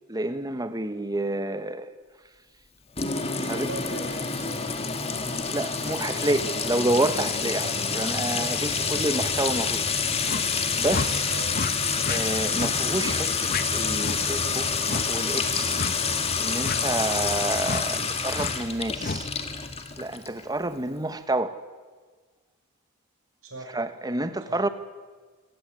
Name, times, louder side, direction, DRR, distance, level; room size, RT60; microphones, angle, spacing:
voice 1, 0.1-1.9 3.5-3.7 5.5-10.0 10.8-11.3 12.1-15.8 16.4-19.3 20.0-21.6 23.7-24.7, right 2 dB, 20° right, 1.3 m, -29 dB
Sink (filling or washing) / Trickle dribble / Fill (with liquid), 3.0-20.4, left 5 dB, 30° left, 1.9 m, -27 dB
voice 2, 3.2-4.7 11.2-11.6 23.4-23.7 24.5-24.6, right 2 dB, 80° right, 6.8 m, -39 dB
sound 1, 10.3-10.5 10.9-11.1 11.5-11.7 12.0-12.2 12.6-12.7 13.0-13.2 13.5-13.6 14.0-14.2 14.9-15.1 15.8-16.0 16.6-16.8 17.6-17.8 18.3-18.5 19.0-19.2, left 4 dB, 45° left, 1.1 m, -30 dB
26.0 x 16.0 x 9.5 m
head